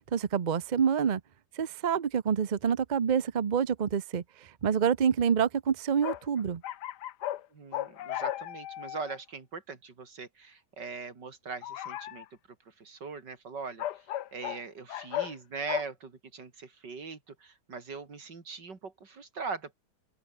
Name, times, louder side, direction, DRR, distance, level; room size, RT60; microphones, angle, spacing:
voice 1, 0.1-1.2 1.6-4.2 4.6-6.6, right 7 dB, 45° right, 0.6 m, -27 dB
sound 1, 6.0-7.4 7.7-9.2 11.6-12.2 13.8-14.6 14.9-15.3 15.7-15.8, left 12 dB, 75° left, 1.4 m, -35 dB
voice 2, 7.5-12.3 12.8-13.8 14.3-19.7, right 4 dB, 85° right, 3.6 m, -41 dB
open air
omnidirectional pair, 1.8 m